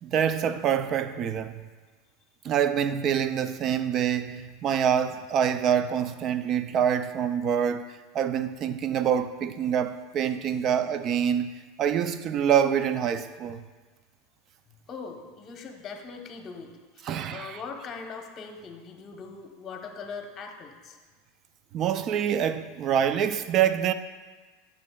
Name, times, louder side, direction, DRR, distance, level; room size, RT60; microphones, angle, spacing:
voice 1, 0.0-1.6 2.4-11.5 11.8-13.6 17.0-17.6 21.7-23.9, right 8 dB, 40° right, 0.4 m, -26 dB
voice 2, 14.9-21.0, left 5 dB, 35° left, 0.9 m, -41 dB
10.5 x 6.4 x 2.3 m
supercardioid pair, 120°, 0 cm